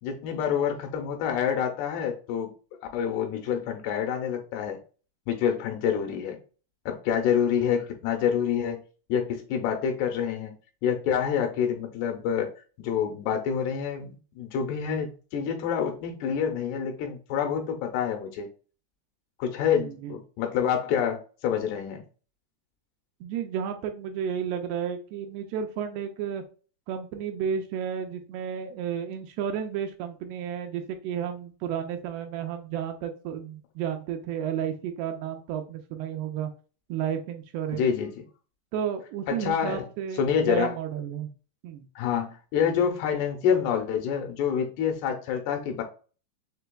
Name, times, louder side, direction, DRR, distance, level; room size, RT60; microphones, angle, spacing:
voice 1, 0.0-2.5 2.9-4.8 5.3-6.4 6.9-8.8 9.1-10.5 10.8-12.5 12.8-18.5 19.4-22.0 37.8-38.1 39.3-39.8 40.2-40.7 42.0-45.8, left 8 dB, 80° left, 4 dB, 2.7 m, -27 dB
voice 2, 19.8-20.1 23.2-26.4 26.9-36.5 36.9-37.9 38.7-41.3 41.6-41.9, right 8 dB, 80° right, 5 dB, 2.5 m, -32 dB
6.8 x 3.3 x 2.2 m, 0.37 s
omnidirectional pair, 4.9 m